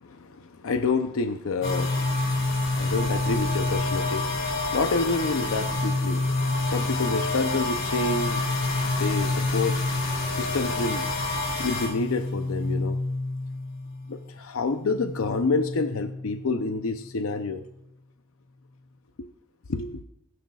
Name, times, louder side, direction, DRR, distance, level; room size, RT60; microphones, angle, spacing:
voice 1, 0.0-11.1 11.6-13.0 14.1-17.6 19.2-19.3 19.7-20.0, left 3 dB, 80° left, 0.6 m, -29 dB
sound 1, 1.6-14.3 14.6-17.1, left 2 dB, 65° left, 3.0 m, -28 dB
21.5 x 10.5 x 2.4 m
head